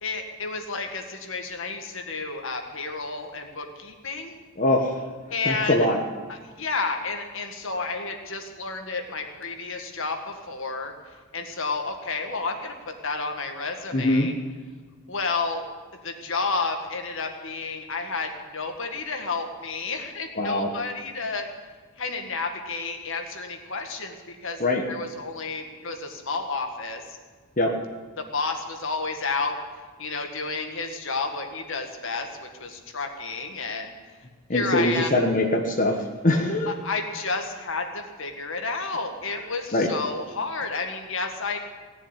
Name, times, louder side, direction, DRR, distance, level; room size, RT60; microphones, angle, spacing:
voice 1, 0.0-4.4 5.3-5.9 6.3-10.9 11.3-12.7 13.0-14.3 15.1-15.6 16.0-21.5 22.0-24.6 24.9-27.2 28.3-29.6 30.0-33.9 34.5-35.1 36.7-41.6, left 4 dB, 60° left, 4 dB, 1.8 m, -31 dB
voice 2, 4.6-5.0 5.4-6.0 13.9-14.3 20.4-20.7 24.6-24.8 27.6-27.7 34.5-35.9 36.2-36.7 39.7-39.9, left 1 dB, 35° left, 0 dB, 1.3 m, -22 dB
17.5 x 7.1 x 9.8 m, 1.4 s
head